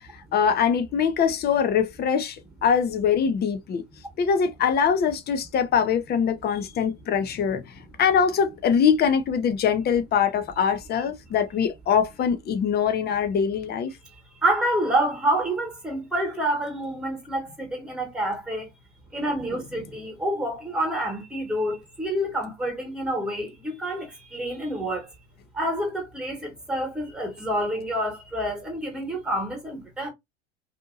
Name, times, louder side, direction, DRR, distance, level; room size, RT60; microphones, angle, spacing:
voice 1, 0.3-3.8 4.2-7.6 8.0-13.9, left 7 dB, 30° left, 0.6 m, -23 dB
voice 2, 14.4-18.7 19.1-25.1 25.5-30.1, right 1 dB, 5° right, 1.4 m, -28 dB
2.7 x 2.5 x 2.5 m
hypercardioid pair, 90°, 34 cm